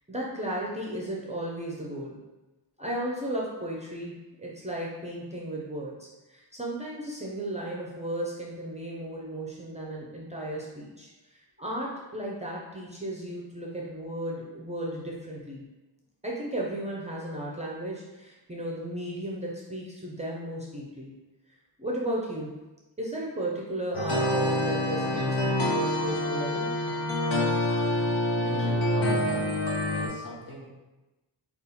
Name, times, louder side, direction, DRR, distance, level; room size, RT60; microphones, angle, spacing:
voice 1, 0.1-2.2 2.8-4.1 4.4-15.6 16.2-21.1 21.8-22.5 23.0-26.7, right 1 dB, 15° right, -3 dB, 0.6 m, -35 dB
sound 1, 23.9-30.1, left 1 dB, 85° left, 0.9 m, -26 dB
voice 2, 28.3-29.5 29.9-30.7, left 1 dB, 50° left, -3 dB, 1.2 m, -39 dB
5.3 x 2.4 x 4.1 m, 1.1 s
wide cardioid pair, 150°, 44 cm